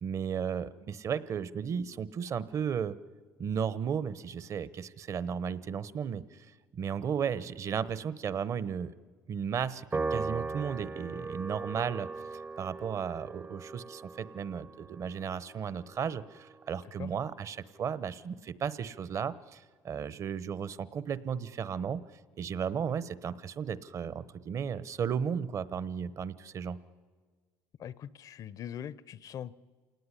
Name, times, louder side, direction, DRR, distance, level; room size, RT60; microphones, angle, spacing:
voice 1, 0.0-3.0 3.4-6.5 6.7-8.9 9.3-12.1 12.6-22.0 22.4-26.8, right 7 dB, 45° right, 17 dB, 1.0 m, -34 dB
Piano, 9.9-16.5, right 3 dB, 20° right, 0.7 m, -39 dB
voice 2, 27.8-29.5, left 9 dB, 55° left, 19 dB, 0.7 m, -41 dB
27.0 x 18.5 x 9.8 m, 1.5 s
supercardioid pair, 100°, 7 cm